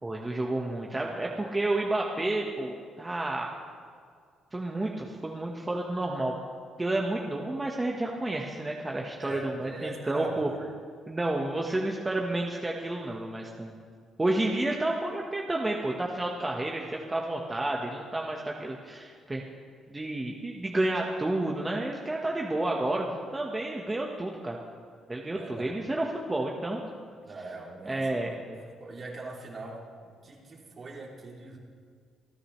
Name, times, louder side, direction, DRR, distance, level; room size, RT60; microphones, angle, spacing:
voice 1, 0.0-3.5 4.5-6.4 6.8-10.5 11.1-13.7 14.2-19.4 19.9-24.6 25.1-26.8 27.8-28.3, right 2 dB, 20° right, -1 dB, 1.3 m, -30 dB
voice 2, 9.2-10.6 25.4-25.9 27.2-31.6, right 2 dB, 45° right, -2 dB, 2.9 m, -42 dB
27.5 x 10.0 x 3.3 m, 2.1 s
cardioid pair, 90°, 0 cm